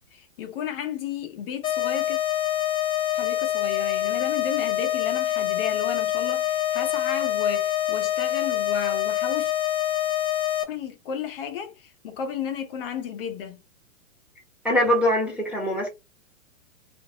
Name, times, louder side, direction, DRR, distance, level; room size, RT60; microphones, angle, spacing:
voice 1, 0.1-2.2 3.1-9.5 10.7-13.6, left 7 dB, 45° left, 0.6 m, -33 dB
sound 1, 1.6-10.6, left 12 dB, 10° left, 0.3 m, -25 dB
voice 2, 14.6-15.9, equal, 5° right, 0.7 m, -22 dB
2.8 x 2.5 x 2.6 m
hypercardioid pair, 135°, 39 cm